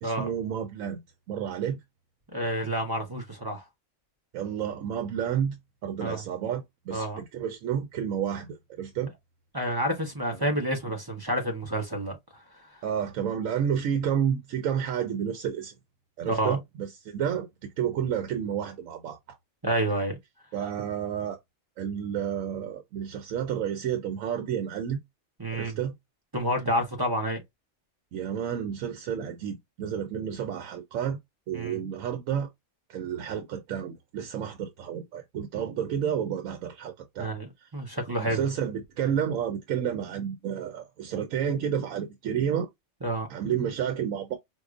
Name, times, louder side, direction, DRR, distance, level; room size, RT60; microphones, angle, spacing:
voice 1, 0.0-1.0 1.3-1.8 4.3-8.5 8.8-9.1 10.5-10.6 12.8-15.7 16.2-19.2 20.5-21.4 21.8-25.0 25.5-25.9 28.1-31.2 31.5-32.5 32.9-37.7 38.3-42.7 43.3-44.4, right 8 dB, 90° right, 1.0 m, -30 dB
voice 2, 2.3-3.6 6.0-6.2 6.9-7.2 9.5-12.4 16.2-16.6 19.6-20.2 25.4-25.8 26.3-27.4 31.5-31.9 37.2-38.4 43.0-43.3, right 1 dB, 20° right, 0.7 m, -29 dB
4.6 x 2.3 x 2.4 m
omnidirectional pair, 1.4 m